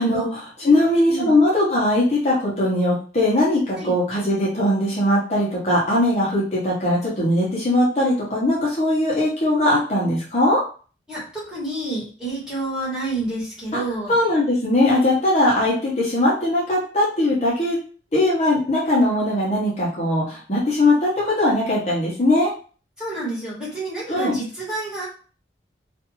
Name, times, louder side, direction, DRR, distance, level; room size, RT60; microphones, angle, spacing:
voice 1, 0.0-10.6 14.1-17.8 18.1-22.5 24.1-24.4, left 1 dB, 40° left, -6 dB, 0.8 m, -20 dB
voice 2, 0.6-1.3 3.8-3.9 11.1-14.1 23.0-25.1, right 2 dB, 5° right, -8 dB, 1.2 m, -29 dB
2.5 x 2.4 x 2.9 m, 0.39 s
head